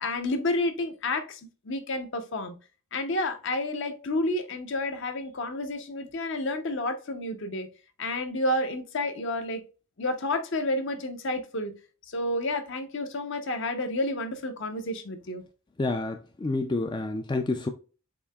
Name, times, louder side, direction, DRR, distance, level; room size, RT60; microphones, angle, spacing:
voice 1, 0.0-1.4 1.7-2.5 2.9-7.7 8.0-9.6 10.0-11.7 12.1-15.4, left 1 dB, 60° left, 0.8 m, -30 dB
voice 2, 15.8-17.7, left 2 dB, 20° left, 0.3 m, -29 dB
7.0 x 2.7 x 2.3 m
head